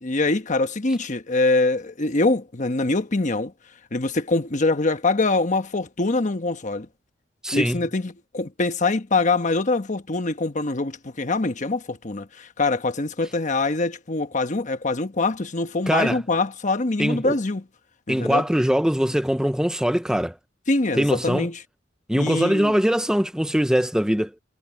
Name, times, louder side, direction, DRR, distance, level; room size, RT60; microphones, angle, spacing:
voice 1, 0.0-3.5 3.9-6.9 7.5-17.6 18.1-18.4 20.7-21.6 22.2-22.7, left 3 dB, 40° left, 1.2 m, -24 dB
voice 2, 7.4-7.8 15.9-16.2 17.0-17.3 18.1-20.4 21.0-21.5 22.1-24.3, equal, 5° right, 0.6 m, -22 dB
head